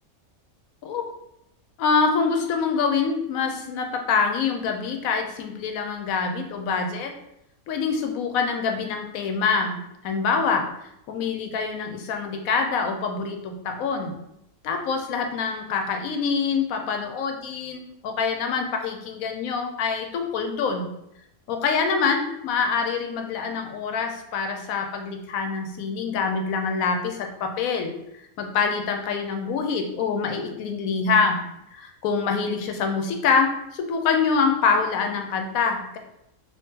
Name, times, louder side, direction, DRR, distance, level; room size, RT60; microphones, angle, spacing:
voice 1, 1.8-7.1 7.7-10.6 11.1-14.2 14.6-20.9 21.5-28.0 28.4-31.4 31.7-36.0, left 5 dB, 90° left, 4 dB, 1.0 m, -25 dB
3.1 x 2.8 x 3.6 m, 0.80 s
omnidirectional pair, 1.4 m